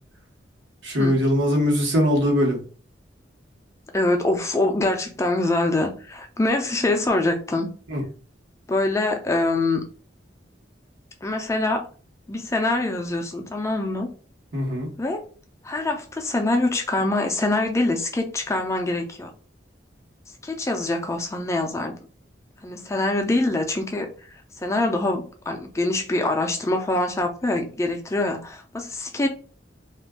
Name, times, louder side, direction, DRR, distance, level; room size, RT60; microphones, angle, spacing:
voice 1, 0.8-2.6 7.9-8.0 14.5-14.9, equal, 80° right, 1.1 m, -21 dB
voice 2, 3.9-7.7 8.7-9.8 11.2-11.9 12.3-14.1 15.0-15.2 15.6-19.3 20.4-22.1 22.6-29.3, left 2 dB, 15° left, 0.4 m, -24 dB
2.4 x 2.2 x 3.4 m
head